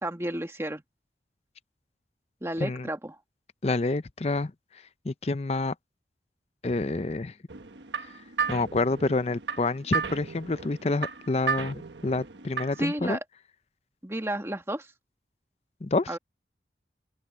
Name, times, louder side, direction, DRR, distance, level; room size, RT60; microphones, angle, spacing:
voice 1, 0.0-0.8 2.4-3.2 12.8-13.2 14.0-14.9 16.1-16.2, right 1 dB, 15° right, 1.8 m, -31 dB
voice 2, 2.6-2.9 3.6-4.5 5.0-5.7 6.6-7.3 8.5-13.2 15.8-16.1, left 2 dB, 35° left, 0.5 m, -28 dB
sound 1, 7.5-12.9, right 6 dB, 85° right, 1.3 m, -34 dB
open air
head